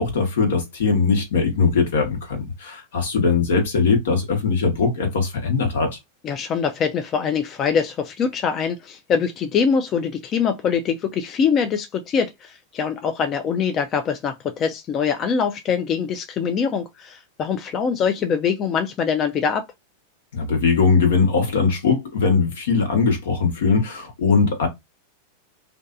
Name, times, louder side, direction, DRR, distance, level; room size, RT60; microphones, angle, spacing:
voice 1, 0.0-6.0 20.3-24.7, left 4 dB, 75° left, 1.1 m, -20 dB
voice 2, 6.2-19.7, left 6 dB, 35° left, 0.4 m, -23 dB
2.5 x 2.3 x 2.4 m
hypercardioid pair, 105°, 0 cm